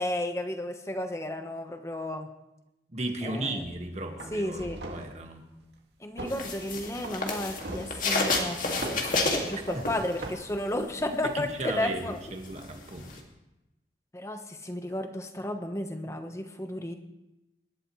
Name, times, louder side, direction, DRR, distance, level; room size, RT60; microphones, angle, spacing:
voice 1, 0.0-2.3 3.2-3.6 4.3-4.8 6.0-12.2 14.1-16.9, left 1 dB, 15° left, 6 dB, 1.1 m, -33 dB
voice 2, 2.9-5.4 11.3-13.2, right 2 dB, 40° right, 3 dB, 1.8 m, -35 dB
sound 1, 3.6-3.8 4.2-5.2 6.2-6.4 7.0-8.0 8.8-9.1 9.7-10.3, right 1 dB, 80° right, 2.1 m, -40 dB
sound 2, 6.3-10.5 10.8-13.2, left 3 dB, 50° left, 2.3 m, -30 dB
26.0 x 11.5 x 3.2 m, 0.94 s
head